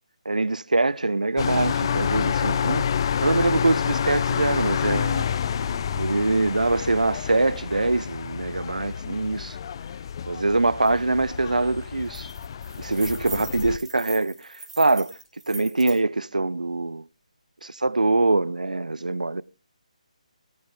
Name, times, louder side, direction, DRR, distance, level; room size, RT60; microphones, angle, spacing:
voice 1, 0.3-2.9 3.2-5.2 5.9-9.6 10.3-12.3 12.8-15.1 15.5-17.0 17.6-19.4, right 2 dB, 80° right, 0.6 m, -24 dB
sound 1, 1.4-13.8, left 8 dB, 40° left, 0.6 m, -28 dB
sound 2, 10.8-10.9 11.3-11.5 11.8-16.0, right 2 dB, 65° right, 3.5 m, -41 dB
17.5 x 10.5 x 3.4 m
figure-of-eight pair, 145°, 4 cm